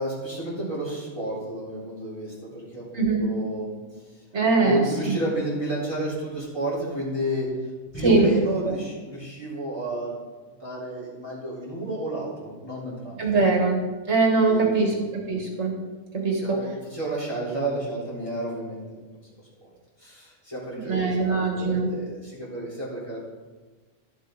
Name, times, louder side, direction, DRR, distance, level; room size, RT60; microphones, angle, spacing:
voice 1, 0.0-4.2 4.6-10.2 10.6-13.2 14.3-15.0 16.3-18.8 19.6-19.7 20.0-23.3, right 1 dB, 25° left, -8 dB, 3.7 m, -31 dB
voice 2, 2.9-3.3 4.3-5.2 8.0-8.3 8.6-8.8 13.2-13.8 14.1-15.7 16.1-16.6 20.7-21.9, right 3 dB, 65° right, 1 dB, 1.7 m, -22 dB
11.5 x 7.5 x 3.9 m, 1.3 s
omnidirectional pair, 1.3 m